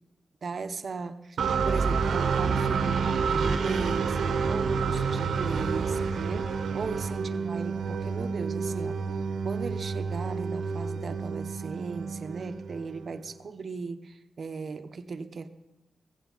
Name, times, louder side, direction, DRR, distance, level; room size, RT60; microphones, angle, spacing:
voice 1, 0.4-4.2 4.5-6.5 6.7-9.0 9.4-15.5, right 4 dB, 55° right, 9 dB, 0.8 m, -37 dB
sound 1, 1.4-13.2, right 5 dB, 85° right, 1.0 m, -29 dB
16.5 x 15.5 x 4.0 m, 0.97 s
wide cardioid pair, 100°, 0 cm